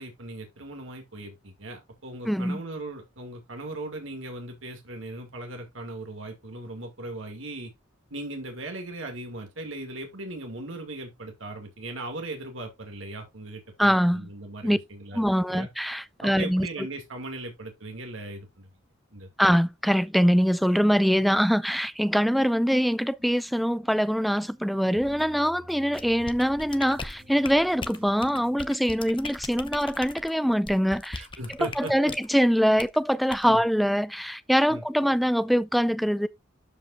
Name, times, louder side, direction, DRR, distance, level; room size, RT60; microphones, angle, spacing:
voice 1, 0.0-7.7 8.1-15.2 15.5-15.7 16.2-18.7 19.1-19.3 31.2-31.9 33.4-33.6 34.7-34.8, right 2 dB, 75° right, 2.4 m, -38 dB
voice 2, 2.3-2.6 13.8-14.3 14.6-14.8 15.1-16.7 19.4-31.3 31.6-36.3, equal, ahead, 0.4 m, -23 dB
sound 1, 24.9-28.8, right 1 dB, 30° right, 2.0 m, -51 dB
sound 2, 26.0-32.3 32.8-33.0 33.3-33.5, left 4 dB, 25° left, 0.8 m, -39 dB
12.5 x 5.3 x 2.5 m
head